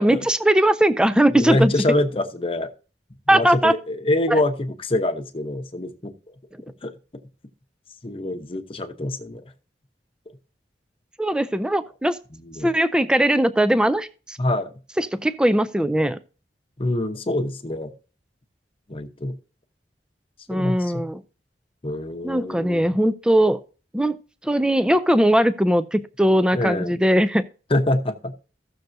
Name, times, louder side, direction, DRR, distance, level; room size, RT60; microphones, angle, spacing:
voice 1, 0.0-1.7 3.3-3.8 4.3-4.4 11.2-12.2 12.6-14.4 15.0-16.2 20.5-21.2 22.2-23.6 23.9-24.2 24.4-27.4, right 1 dB, 5° right, 13 dB, 0.3 m, -19 dB
voice 2, 1.3-2.7 3.3-6.1 6.6-6.9 8.0-9.4 10.3-10.4 12.3-12.7 14.4-14.7 16.8-17.9 18.9-19.4 20.5-21.0 21.8-22.8 26.5-26.9 27.7-28.4, left 1 dB, 30° left, 6 dB, 0.9 m, -25 dB
16.0 x 6.7 x 2.6 m, 0.36 s
head